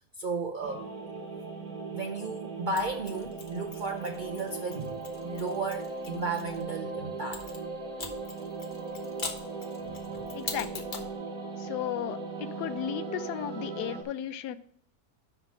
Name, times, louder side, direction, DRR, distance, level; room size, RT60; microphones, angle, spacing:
voice 1, 0.2-0.9 1.9-5.0 5.2-7.4 9.8-10.2, right 3 dB, 90° right, 2 dB, 0.4 m, -34 dB
sound 1, 0.6-14.0, right 3 dB, 65° right, 1.5 m, -38 dB
Mechanisms, 2.8-6.6 7.3-11.1, left 4 dB, 35° left, 1.1 m, -43 dB
voice 2, 10.3-10.8 11.6-14.6, left 11 dB, 80° left, 13 dB, 1.2 m, -35 dB
5.8 x 5.6 x 5.9 m, 0.66 s
omnidirectional pair, 1.7 m